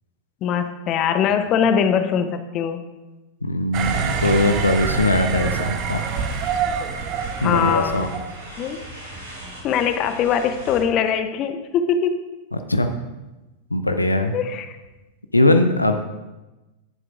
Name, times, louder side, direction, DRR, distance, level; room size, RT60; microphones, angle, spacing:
voice 1, 0.4-2.8 5.4-5.5 7.4-8.0 8.6-8.8 9.6-12.2 14.3-14.8, left 7 dB, 35° left, 9 dB, 0.7 m, -22 dB
voice 2, 3.4-6.0 6.9-7.1 7.4-8.1 12.5-12.9 13.7-14.3 15.3-16.0, left 1 dB, 85° left, 7 dB, 0.6 m, -20 dB
sound 1, 3.7-8.5, right 6 dB, 40° right, 0.9 m, -26 dB
sound 2, 3.8-10.8, right 1 dB, 80° right, 2.9 m, -40 dB
17.0 x 7.6 x 2.5 m, 1.1 s
figure-of-eight pair, 90°, 0 cm